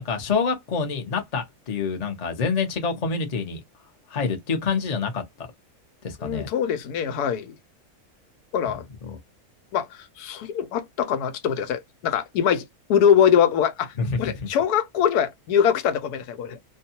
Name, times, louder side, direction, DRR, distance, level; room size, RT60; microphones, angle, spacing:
voice 1, 0.0-3.6 4.1-5.5 6.0-6.5 8.6-8.7 9.0-9.2 14.0-14.5, left 5 dB, 35° left, 0.6 m, -27 dB
voice 2, 6.2-7.6 8.5-8.9 9.7-9.9 10.2-13.9 14.2-16.6, left 8 dB, 90° left, 1.1 m, -22 dB
2.6 x 2.3 x 2.7 m
omnidirectional pair, 1.6 m